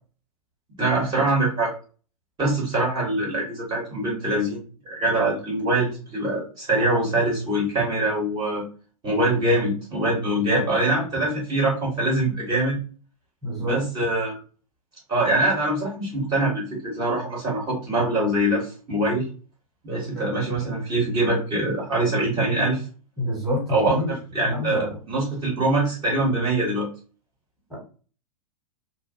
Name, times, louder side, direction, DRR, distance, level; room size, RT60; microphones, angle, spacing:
voice 1, 0.8-1.7 2.4-8.6 9.0-12.8 13.6-14.3 15.1-19.2 19.8-22.8 23.7-24.0 24.3-26.9, right 1 dB, 20° right, -4 dB, 1.0 m, -23 dB
voice 2, 10.3-10.6 13.4-13.7 20.1-20.3 23.2-24.1 24.4-25.0 27.7-27.8, left 1 dB, ahead, -4 dB, 1.1 m, -27 dB
2.5 x 2.1 x 2.6 m, 0.37 s
figure-of-eight pair, 100°, 19 cm